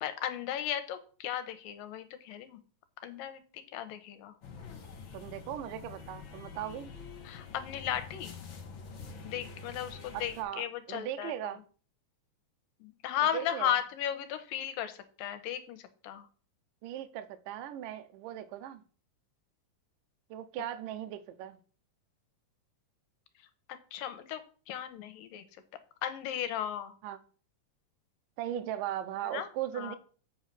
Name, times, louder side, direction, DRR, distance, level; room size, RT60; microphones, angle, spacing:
voice 1, 0.0-2.6 3.0-4.3 7.2-8.4 9.2-11.5 12.8-16.3 23.7-24.4 24.7-25.6 26.0-26.9 29.2-30.0, left 10 dB, 80° left, 2.5 m, -36 dB
sound 1, 4.4-10.4, left 5 dB, 60° left, 1.2 m, -46 dB
voice 2, 5.1-6.9 10.1-11.6 13.3-13.8 16.8-18.8 20.3-21.6 27.0-27.2 28.4-30.0, right 11 dB, 80° right, 2.2 m, -38 dB
7.2 x 5.5 x 5.9 m
omnidirectional pair, 4.0 m